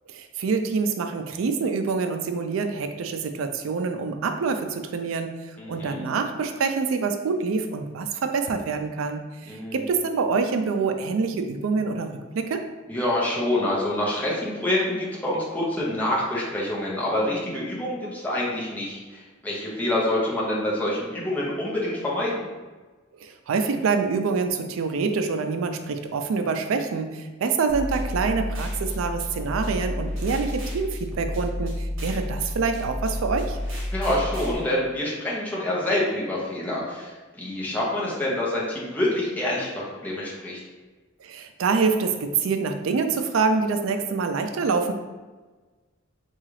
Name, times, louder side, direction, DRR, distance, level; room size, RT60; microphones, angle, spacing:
voice 1, 0.1-12.1 12.3-12.6 23.2-33.6 41.2-44.9, right 4 dB, 85° right, 6 dB, 0.4 m, -26 dB
voice 2, 5.6-6.1 9.5-9.9 12.9-22.5 33.9-39.7 40.0-40.6, left 1 dB, 10° left, -6 dB, 0.7 m, -26 dB
sound 1, 27.7-34.5, left 1 dB, 70° right, 0.9 m, -31 dB
3.7 x 2.3 x 3.1 m, 1.3 s
head